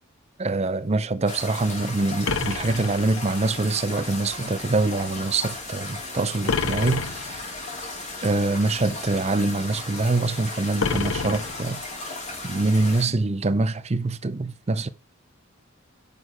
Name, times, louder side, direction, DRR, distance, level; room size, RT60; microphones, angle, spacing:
voice 1, 0.4-7.5 8.2-11.9 12.4-14.9, right 3 dB, 30° right, 0.6 m, -24 dB
sound 1, 1.3-13.0, left 2 dB, 35° left, 4.4 m, -36 dB
sound 2, 2.2-3.6 6.5-7.6 10.8-12.1, left 5 dB, 80° left, 0.8 m, -29 dB
10.5 x 6.6 x 3.7 m
head